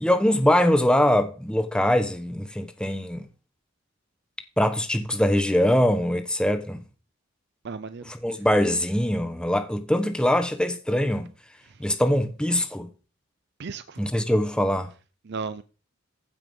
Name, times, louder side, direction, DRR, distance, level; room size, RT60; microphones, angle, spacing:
voice 1, 0.0-3.2 4.6-6.8 8.2-11.3 11.8-12.9 14.0-14.9, left 1 dB, 5° left, 0.9 m, -22 dB
voice 2, 7.6-8.5 11.6-11.8 13.6-14.1 15.2-15.6, right 4 dB, 55° right, 0.5 m, -36 dB
15.0 x 5.7 x 5.3 m
head